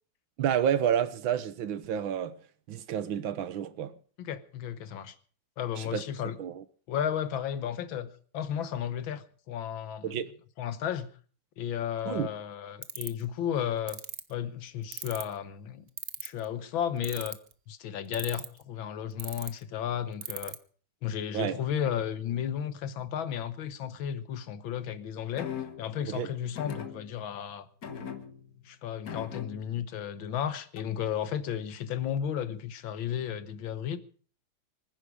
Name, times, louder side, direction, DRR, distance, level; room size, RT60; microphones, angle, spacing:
voice 1, 0.4-2.4 2.7-3.9 5.8-6.0 6.4-6.6 10.0-10.3 12.1-12.3 21.3-21.6 26.1-26.3, right 9 dB, 90° right, 1.8 m, -30 dB
voice 2, 4.2-5.2 5.6-6.4 6.9-10.1 10.6-11.1 11.6-14.0 14.3-15.9 16.2-17.4 17.7-20.6 21.0-25.5 25.8-27.7 28.7-34.0, left 9 dB, 90° left, 1.9 m, -33 dB
sound 1, 12.8-13.2 13.9-14.2 14.9-15.3 16.0-16.5 17.0-17.5 18.1-18.6 19.2-19.5 20.2-20.6, right 8 dB, 50° right, 0.8 m, -36 dB
sound 2, 25.4-26.0 26.6-27.4 27.8-28.6 29.1-29.8 30.8-31.1, left 8 dB, 50° left, 1.7 m, -40 dB
24.5 x 10.0 x 4.8 m
omnidirectional pair, 2.1 m